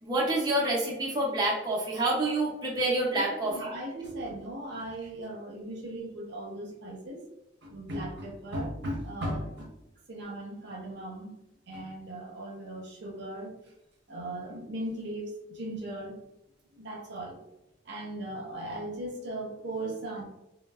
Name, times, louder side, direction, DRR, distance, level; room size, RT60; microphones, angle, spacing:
voice 1, 0.0-3.8, right 2 dB, 25° right, -4 dB, 0.5 m, -28 dB
voice 2, 3.2-7.2 7.6-9.7 10.1-11.3 11.7-13.5 14.1-16.2 16.7-17.4 17.8-20.2, right 1 dB, 65° right, 0 dB, 0.6 m, -37 dB
3.1 x 2.0 x 2.3 m, 0.91 s
head